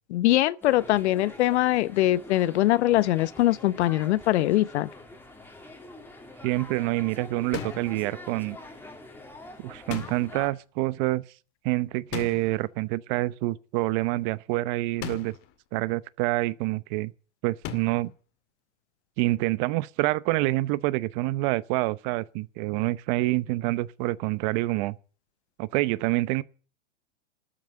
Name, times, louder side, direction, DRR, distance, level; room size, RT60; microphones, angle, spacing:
voice 1, 0.1-4.9, left 15 dB, 60° left, 0.9 m, -22 dB
sound 1, 0.6-10.5, left 2 dB, 5° left, 2.7 m, -45 dB
voice 2, 6.4-8.6 9.6-11.2 11.6-15.3 15.7-17.1 17.4-18.1 19.2-25.0 25.6-26.4, right 19 dB, 40° right, 0.8 m, -27 dB
sound 2, 7.5-8.0 9.9-10.5 12.1-12.7 15.0-15.5 17.6-18.1, left 11 dB, 35° left, 2.1 m, -37 dB
13.0 x 9.4 x 9.5 m
hypercardioid pair, 135°, 37 cm